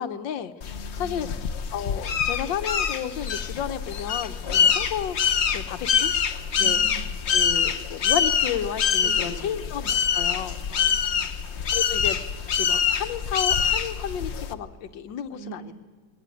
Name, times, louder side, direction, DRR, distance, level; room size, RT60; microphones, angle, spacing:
voice 1, 0.0-0.5 1.0-1.3 1.7-5.2 5.5-6.1 6.6-6.8 7.3-10.6 11.7-15.7, left 9 dB, 85° left, 11 dB, 1.7 m, -32 dB
sound 1, 0.6-14.5, left 7 dB, 50° left, 0.9 m, -25 dB
voice 2, 0.7-1.3 4.5-4.7 6.5-7.2 9.0-9.9 10.7-11.3 15.3-15.7, right 5 dB, 70° right, 1 dB, 4.3 m, -42 dB
20.0 x 19.5 x 9.2 m, 1.5 s
omnidirectional pair, 1.9 m